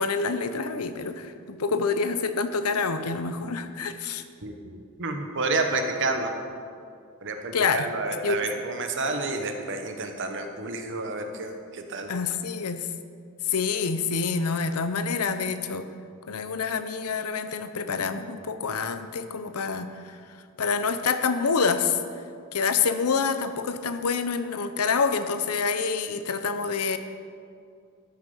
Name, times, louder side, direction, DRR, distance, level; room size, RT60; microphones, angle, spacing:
voice 1, 0.0-4.2 7.5-7.9 8.2-8.4 12.1-12.9 13.5-15.9 16.3-19.9 20.6-22.0 22.5-27.0, left 5 dB, 85° left, 10 dB, 0.7 m, -27 dB
voice 2, 4.4-6.3 7.2-12.1, right 3 dB, 60° right, 5 dB, 1.1 m, -30 dB
13.0 x 6.7 x 5.5 m, 2.3 s
head